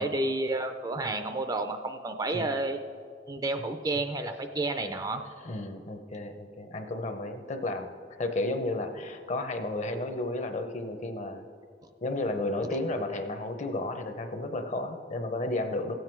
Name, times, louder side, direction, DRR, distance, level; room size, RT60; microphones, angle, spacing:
voice 1, 0.0-2.8 3.3-5.2, right 2 dB, 20° right, 7 dB, 0.4 m, -30 dB
voice 2, 5.4-11.5 12.0-15.9, left 2 dB, 40° left, 7 dB, 0.7 m, -33 dB
16.0 x 7.9 x 4.5 m, 2.2 s
head